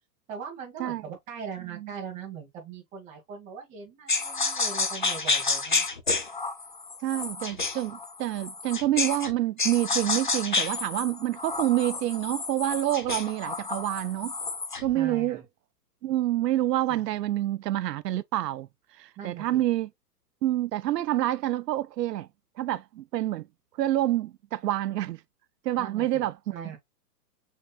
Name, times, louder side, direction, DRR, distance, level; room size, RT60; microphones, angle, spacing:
voice 1, 0.3-5.9 14.9-15.4 16.9-17.0 19.2-19.6 25.8-26.8, right 6 dB, 15° right, 1.6 m, -40 dB
sound 1, 4.1-9.3 9.6-14.9, left 4 dB, 35° left, 0.4 m, -30 dB
voice 2, 7.0-14.3 14.8-15.4 16.0-18.7 19.0-19.9 20.4-22.3 22.6-23.4 23.8-25.2 25.7-26.6, right 14 dB, 80° right, 0.6 m, -27 dB
6.5 x 3.2 x 2.3 m
hypercardioid pair, 175°, 48 cm